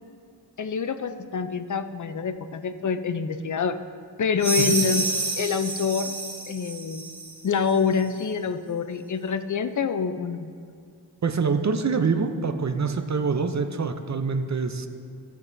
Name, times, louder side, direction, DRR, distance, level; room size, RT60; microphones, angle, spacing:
voice 1, 0.6-3.8 4.2-5.0 5.4-6.1 6.5-7.1 7.4-10.5, left 6 dB, 45° left, 9 dB, 0.5 m, -26 dB
sound 1, 4.4-7.4, right 3 dB, 70° right, 1.6 m, -29 dB
voice 2, 11.2-14.9, right 5 dB, 40° right, 8 dB, 0.6 m, -25 dB
14.5 x 7.6 x 2.6 m, 2.2 s
wide cardioid pair, 80°, 42 cm